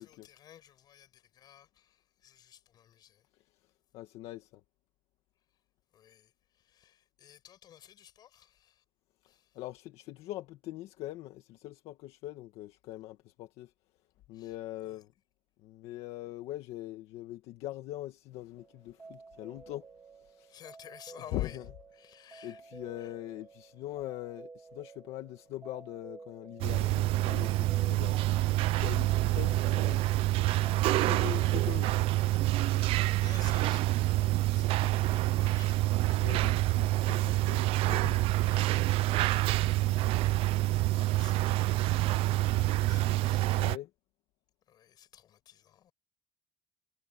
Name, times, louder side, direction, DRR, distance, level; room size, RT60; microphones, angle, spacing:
voice 1, 0.0-3.3 5.5-5.6 5.9-8.8 9.2-9.6 14.3-14.6 14.8-15.0 20.5-21.6 21.9-23.1 29.9-30.2 31.0-31.4 32.3-36.0 38.0-42.4 42.6-43.4 44.7-45.9, left 10 dB, 40° left, 6.9 m, -55 dB
voice 2, 3.9-4.6 9.5-13.7 14.3-15.1 15.6-19.9 20.1-20.6 21.3-21.6 22.4-28.2 28.8-30.6 31.0-31.9 36.2-38.1 43.6-43.9, left 15 dB, 75° left, 2.0 m, -42 dB
sound 1, 18.6-31.8, right 4 dB, 15° right, 2.3 m, -52 dB
sound 2, 26.6-43.8, right 17 dB, 65° right, 0.7 m, -27 dB
cardioid pair, 180°, 10 cm